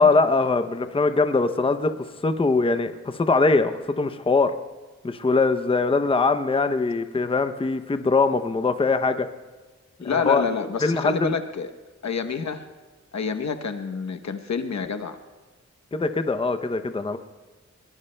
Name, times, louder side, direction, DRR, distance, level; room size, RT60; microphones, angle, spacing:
voice 1, 0.0-4.5 5.0-9.3 10.0-10.4 10.8-11.3 15.9-17.2, left 3 dB, 20° left, 9 dB, 0.6 m, -22 dB
voice 2, 10.0-11.7 12.0-12.6 13.1-15.2, left 5 dB, 70° left, 8 dB, 0.9 m, -28 dB
21.5 x 20.5 x 2.2 m, 1.3 s
wide cardioid pair, 95°, 29 cm